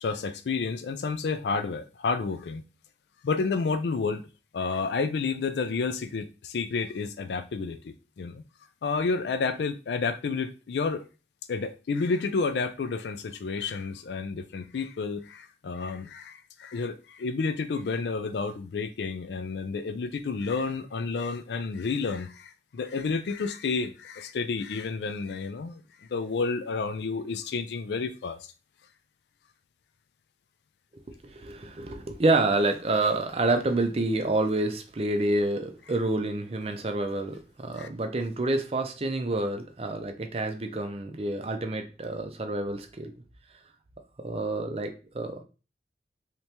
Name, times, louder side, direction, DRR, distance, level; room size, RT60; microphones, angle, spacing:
voice 1, 0.0-2.6 3.2-4.2 4.5-8.4 8.8-11.0 11.5-25.8 26.1-28.5 37.8-37.9, left 4 dB, 75° left, 0.4 m, -30 dB
voice 2, 31.1-43.1 44.2-45.4, right 2 dB, 35° right, 0.5 m, -28 dB
3.3 x 2.9 x 2.8 m
head